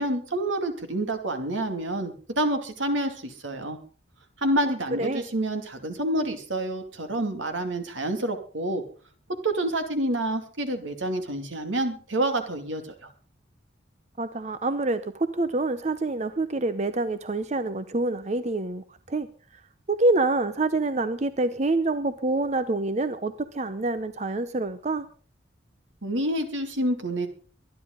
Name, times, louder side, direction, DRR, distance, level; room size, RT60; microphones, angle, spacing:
voice 1, 0.0-3.8 4.4-8.8 9.4-13.1 26.0-27.3, right 1 dB, 85° right, 7 dB, 2.5 m, -28 dB
voice 2, 4.7-5.2 14.2-19.3 19.5-19.6 19.9-25.1, right 2 dB, 35° right, 12 dB, 0.7 m, -27 dB
23.5 x 11.0 x 3.9 m, 0.39 s
head